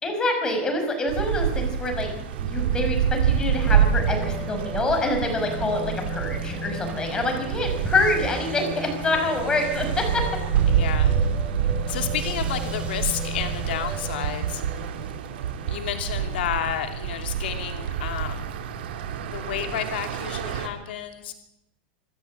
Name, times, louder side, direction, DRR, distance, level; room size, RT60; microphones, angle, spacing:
voice 1, 0.0-10.2, left 2 dB, 15° left, 4 dB, 5.7 m, -26 dB
sound 1, 1.1-20.7, right 8 dB, 90° right, 2.9 m, -27 dB
sound 2, 2.9-17.3, equal, 20° right, 3.4 m, -38 dB
voice 2, 10.7-11.2 11.9-14.9 15.7-18.6 19.3-21.3, left 10 dB, 90° left, 5 dB, 2.7 m, -31 dB
25.5 x 12.5 x 8.6 m, 0.87 s
supercardioid pair, 160°, 5 cm